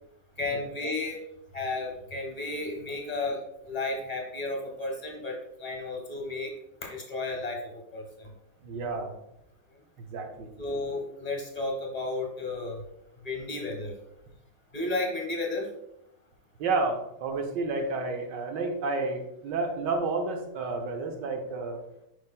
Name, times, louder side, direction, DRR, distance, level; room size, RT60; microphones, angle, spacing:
voice 1, 0.4-1.2 1.5-6.5 6.8-8.3 10.6-12.8 13.2-13.9 14.7-15.7, left 2 dB, 25° left, 1 dB, 1.0 m, -33 dB
voice 2, 8.6-9.1 10.0-10.5 16.6-21.8, right 3 dB, 60° right, 3 dB, 1.4 m, -31 dB
9.9 x 5.1 x 2.2 m, 0.82 s
omnidirectional pair, 2.4 m